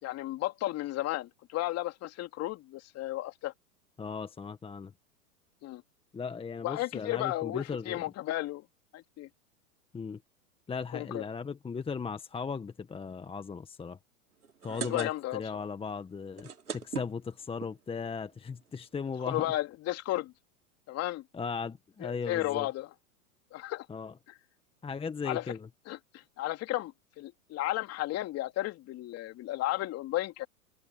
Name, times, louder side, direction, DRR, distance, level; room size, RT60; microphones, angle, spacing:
voice 1, 0.0-3.5 5.6-5.8 6.6-8.6 8.9-9.3 10.9-11.2 14.7-15.4 19.3-20.3 20.9-21.2 22.0-22.9 23.5-23.9 25.2-25.5 25.9-30.5, left 16 dB, 35° left, 3.0 m, -34 dB
voice 2, 4.0-4.9 6.1-8.0 9.9-10.2 10.7-14.0 14.6-19.5 21.3-22.7 23.9-24.1 24.8-25.7, left 5 dB, 10° left, 1.5 m, -37 dB
sound 1, 14.4-15.5 15.8-15.9 16.2-17.7 18.4-18.5 18.8-18.9 19.0-19.3, right 7 dB, 90° right, 3.1 m, -39 dB
hypercardioid pair, 110°, 44 cm